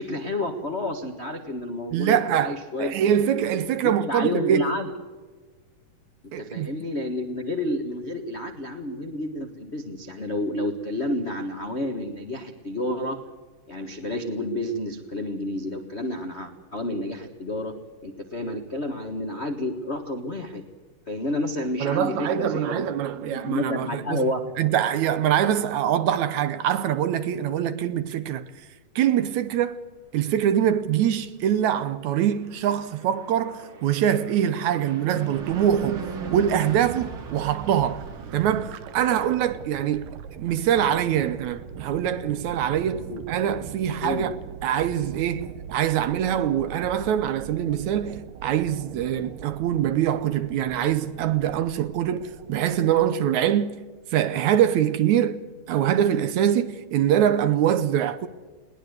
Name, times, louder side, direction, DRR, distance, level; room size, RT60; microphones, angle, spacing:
voice 1, 0.0-3.0 3.4-3.5 3.8-4.9 6.2-13.2 13.7-17.7 18.0-20.6 21.1-22.8 23.2-24.4 43.0-43.2 44.0-44.3, left 1 dB, 50° left, 0.7 m, -30 dB
voice 2, 1.9-2.5 2.8-4.8 6.3-6.7 21.8-24.2 24.6-28.4 29.0-29.8 30.1-36.0 36.3-38.0 38.3-53.8 54.1-55.4 55.7-58.3, right 10 dB, 70° right, 2.0 m, -24 dB
Fixed-wing aircraft airplane, 32.3-39.6, right 6 dB, 45° right, 2.5 m, -39 dB
sound 1, 35.4-53.1, right 8 dB, 90° right, 2.6 m, -41 dB
21.0 x 19.0 x 8.0 m
omnidirectional pair, 3.7 m